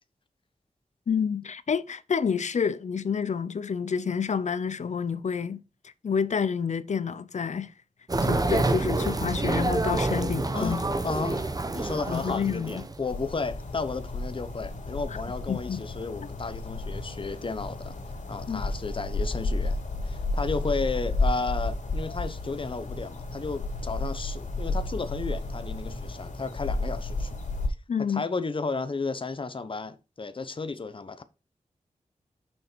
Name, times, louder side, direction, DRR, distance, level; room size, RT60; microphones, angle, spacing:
voice 1, 1.1-5.6 6.0-7.7 8.2-10.8 12.1-12.8 15.5-15.8 18.5-18.6 27.9-28.2, left 6 dB, 70° left, 0.6 m, -28 dB
sound 1, 8.1-13.1, right 2 dB, 30° right, 1.0 m, -27 dB
voice 2, 10.5-18.0 18.3-19.8 20.0-27.4 28.1-31.2, left 4 dB, 45° left, 1.0 m, -33 dB
sound 2, 13.0-27.7, left 2 dB, 85° left, 2.9 m, -32 dB
6.6 x 5.7 x 4.5 m
wide cardioid pair, 80°, 13 cm